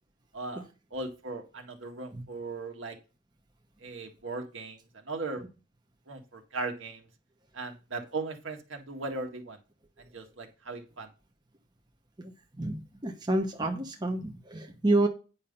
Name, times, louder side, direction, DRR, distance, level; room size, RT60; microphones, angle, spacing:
voice 1, 0.3-0.6 0.9-3.0 3.8-5.5 6.1-7.1 7.5-9.6 10.0-11.1, right 3 dB, 75° right, 3 dB, 1.8 m, -38 dB
voice 2, 12.6-15.1, right 2 dB, 20° right, 3 dB, 1.0 m, -29 dB
9.5 x 5.6 x 5.4 m, 0.32 s
head